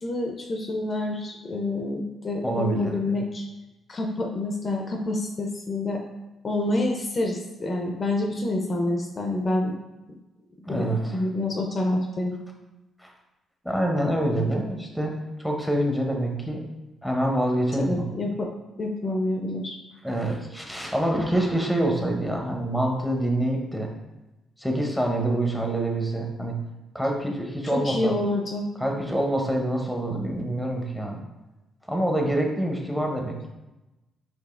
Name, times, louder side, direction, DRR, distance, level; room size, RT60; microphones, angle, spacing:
voice 1, 0.0-3.4 3.9-6.0 6.4-9.8 10.7-12.4 17.8-18.5 18.8-19.8 27.6-28.7, left 2 dB, 35° left, 2 dB, 0.4 m, -27 dB
voice 2, 2.4-3.2 10.7-11.2 13.0-13.1 13.6-15.1 15.4-16.6 17.0-18.1 20.0-23.9 24.6-26.6 26.9-28.1 28.8-31.2 31.9-33.5, right 1 dB, ahead, 1 dB, 0.7 m, -26 dB
4.6 x 2.7 x 2.4 m, 1.0 s
cardioid pair, 90°, 0 cm